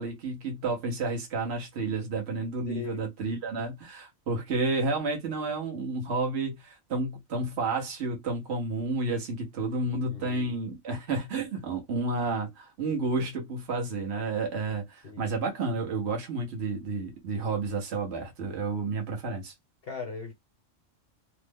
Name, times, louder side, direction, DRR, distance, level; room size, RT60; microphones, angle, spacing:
voice 1, 0.0-19.5, right 3 dB, 60° right, 1.2 m, -31 dB
voice 2, 2.6-3.0 10.1-10.6 15.0-15.3 19.8-20.3, left 5 dB, 55° left, 1.0 m, -39 dB
3.0 x 2.0 x 3.4 m
omnidirectional pair, 1.3 m